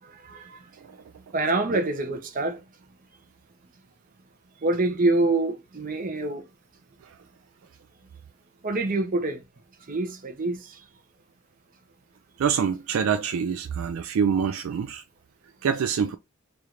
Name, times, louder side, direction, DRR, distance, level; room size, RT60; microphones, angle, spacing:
voice 1, 0.2-0.6 1.3-2.6 4.6-6.4 8.6-9.4 9.9-10.7, right 2 dB, 40° right, 0.7 m, -26 dB
voice 2, 12.4-15.0 15.6-16.2, right 7 dB, 70° right, 0.4 m, -25 dB
3.3 x 2.4 x 4.3 m
head